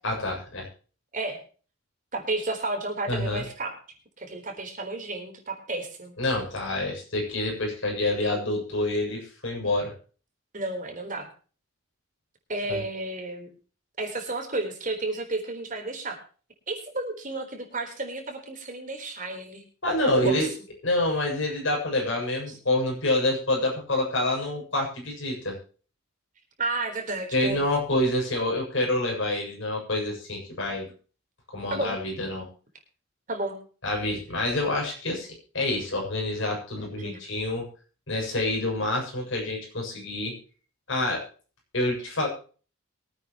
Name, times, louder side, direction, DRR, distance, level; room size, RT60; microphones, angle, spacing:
voice 1, 0.0-0.7 3.1-3.4 6.2-9.9 12.7-12.8 19.8-20.5 20.8-25.6 27.3-30.9 31.5-32.5 33.8-35.3 35.5-37.7 38.1-40.3 40.9-41.3 41.7-42.3, left 1 dB, 60° left, 0 dB, 7.5 m, -27 dB
voice 2, 2.1-3.7 4.2-6.1 10.5-11.3 12.5-13.5 14.0-16.2 16.7-19.6 20.1-20.5 26.6-27.6 31.7-32.0 33.3-33.6 37.0-37.2, right 2 dB, 40° right, 3 dB, 4.0 m, -32 dB
23.5 x 9.1 x 3.1 m, 0.39 s
head